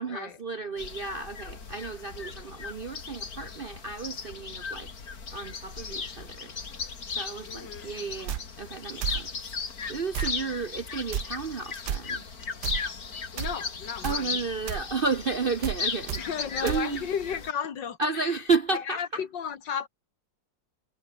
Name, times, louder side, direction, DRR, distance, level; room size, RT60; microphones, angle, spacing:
voice 1, 0.0-4.9 5.3-6.5 7.1-9.3 9.9-12.2 14.0-16.2 16.6-17.1 18.0-19.2, right 4 dB, 45° right, 0.7 m, -32 dB
sound 1, 0.8-17.5, left 5 dB, 50° left, 2.8 m, -37 dB
voice 2, 7.4-8.0 13.3-14.4 16.2-18.4 18.7-19.9, left 7 dB, 75° left, 2.3 m, -34 dB
sound 2, 8.3-8.4 9.0-9.2 10.1-10.4 11.1-11.3 11.9-12.0 12.6-12.8 13.4-13.6 14.0-14.2 14.7-14.8 15.6-15.8 16.1-16.2 16.7-16.8, right 9 dB, 65° right, 1.7 m, -31 dB
omnidirectional pair, 2.0 m